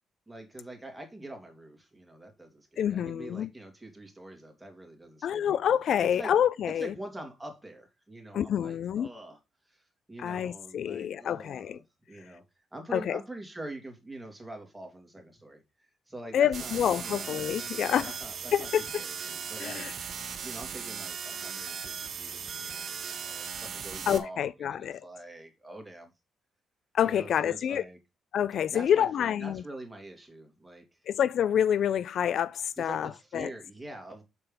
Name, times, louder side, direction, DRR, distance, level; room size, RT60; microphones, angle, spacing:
voice 1, 0.3-5.6 6.0-6.3 6.6-17.3 17.8-20.0 20.4-26.1 27.0-28.0 28.7-31.0 32.8-34.2, right 1 dB, 10° right, 2.8 m, -45 dB
voice 2, 2.8-3.5 5.2-6.9 8.3-9.1 10.2-11.8 12.9-13.2 16.3-18.1 18.5-18.8 19.6-19.9 24.1-25.0 26.9-27.8 28.3-29.6 31.1-33.5, left 9 dB, 65° left, 0.3 m, -27 dB
sound 1, 16.5-24.2, right 7 dB, 60° right, 1.2 m, -38 dB
6.9 x 4.3 x 5.4 m
cardioid pair, 90°, 0 cm